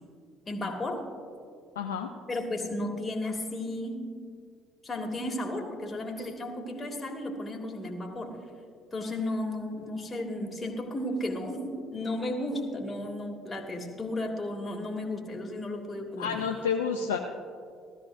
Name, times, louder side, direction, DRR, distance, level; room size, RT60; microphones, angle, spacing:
voice 1, 0.5-1.0 2.3-4.1 4.8-8.4 8.9-16.5, left 1 dB, 30° left, 2 dB, 2.0 m, -34 dB
voice 2, 1.8-2.1 16.2-17.2, left 6 dB, 85° left, 2 dB, 0.5 m, -29 dB
16.0 x 13.0 x 2.6 m, 2.2 s
hypercardioid pair, 55°, 0 cm